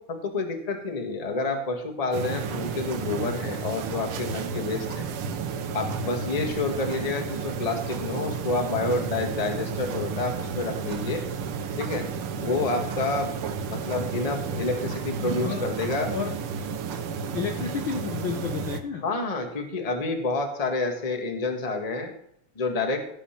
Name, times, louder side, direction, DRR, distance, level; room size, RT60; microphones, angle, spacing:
voice 1, 0.0-5.1 5.7-11.2 11.8-12.0 12.4-13.3 13.7-16.1 19.0-22.1 22.5-23.0, left 3 dB, 20° left, 3 dB, 0.9 m, -29 dB
sound 1, 2.1-18.8, right 5 dB, 70° right, 1.3 m, -32 dB
voice 2, 17.3-19.1, left 7 dB, 70° left, 4 dB, 1.2 m, -31 dB
16.5 x 5.6 x 5.9 m, 0.70 s
omnidirectional pair, 3.6 m